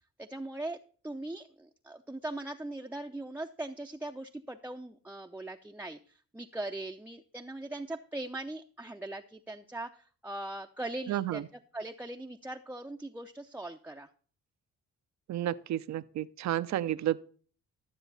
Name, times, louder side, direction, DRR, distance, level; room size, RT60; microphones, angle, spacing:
voice 1, 0.2-0.8 1.0-11.4 11.7-14.1, right 2 dB, 5° right, 0.6 m, -40 dB
voice 2, 11.1-11.4 15.3-17.2, right 12 dB, 65° right, 0.6 m, -31 dB
12.5 x 7.0 x 4.0 m
cardioid pair, 90°, 30 cm